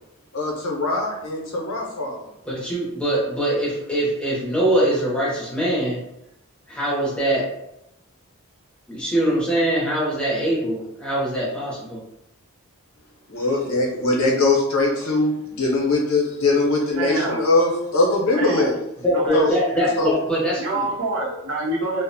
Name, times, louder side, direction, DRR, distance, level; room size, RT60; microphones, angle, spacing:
voice 1, 0.3-2.3 13.3-18.7 19.3-19.5 20.0-20.1, left 2 dB, 75° left, -2 dB, 0.7 m, -21 dB
voice 2, 2.4-6.0 6.7-7.5 8.9-12.0 19.0-20.9, right 1 dB, 5° left, -6 dB, 0.7 m, -23 dB
voice 3, 17.0-17.5 18.3-18.7 19.0-19.4 19.7-19.9 20.6-22.0, right 2 dB, 65° right, -3 dB, 0.7 m, -26 dB
2.5 x 2.1 x 2.6 m, 0.83 s
head